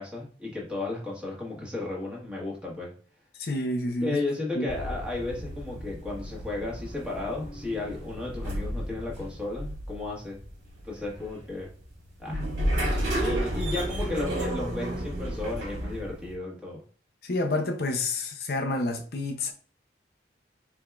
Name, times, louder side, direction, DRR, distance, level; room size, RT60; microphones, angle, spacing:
voice 1, 0.0-2.9 4.0-10.4 10.8-11.7 12.2-12.4 13.1-16.8, left 2 dB, 5° right, 1.3 m, -34 dB
voice 2, 3.4-4.2 4.5-4.7 17.2-19.5, left 2 dB, 55° left, 0.5 m, -29 dB
sound 1, 4.7-16.3, right 1 dB, 75° right, 2.1 m, -32 dB
4.7 x 3.4 x 2.3 m
head